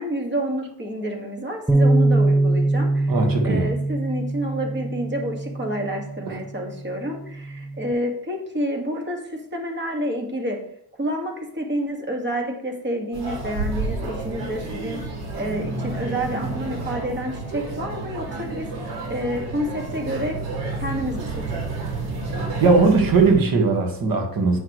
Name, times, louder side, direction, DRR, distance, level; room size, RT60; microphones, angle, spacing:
voice 1, 0.0-3.2 3.4-10.6 11.0-15.0 15.3-18.7 19.1-20.4 20.8-21.3, equal, 25° right, 2 dB, 1.9 m, -29 dB
Bass guitar, 1.7-7.9, right 2 dB, ahead, 0.3 m, -23 dB
voice 2, 3.1-3.7 6.3-6.4 22.6-24.6, right 4 dB, 55° right, 3 dB, 1.6 m, -19 dB
sound 1, 13.1-23.4, right 3 dB, 85° right, 3.0 m, -30 dB
8.7 x 5.8 x 3.1 m, 0.69 s
cardioid pair, 105°, 42 cm